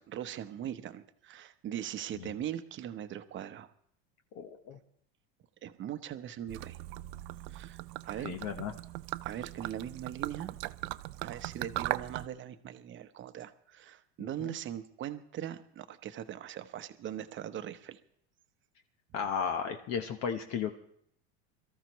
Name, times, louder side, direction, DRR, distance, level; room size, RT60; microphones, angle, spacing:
voice 1, 0.1-3.7 5.6-6.8 7.5-8.3 9.2-10.5 11.2-18.0 19.1-19.2, right 10 dB, 35° right, 9 dB, 0.9 m, -40 dB
voice 2, 4.3-4.8 8.2-8.7 14.2-14.5 19.1-20.7, left 7 dB, 50° left, 6 dB, 1.0 m, -35 dB
Gurgling / Liquid, 6.5-12.3, right 19 dB, 75° right, 0.6 m, -39 dB
22.5 x 14.0 x 3.1 m, 0.68 s
supercardioid pair, 125°, 34 cm